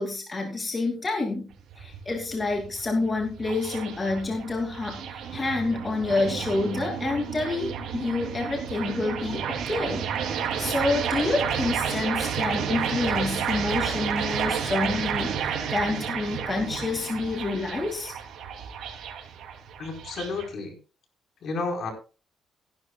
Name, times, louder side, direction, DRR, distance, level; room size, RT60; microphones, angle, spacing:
voice 1, 0.0-1.5 1.8-18.1, left 3 dB, 30° left, 2 dB, 2.5 m, -28 dB
sound 1, 1.5-20.5, right 7 dB, 75° right, 3.0 m, -31 dB
voice 2, 19.8-20.7 21.4-21.9, left 3 dB, 60° left, 2 dB, 4.5 m, -31 dB
16.5 x 11.0 x 2.3 m, 0.34 s
cardioid pair, 90°, 0 cm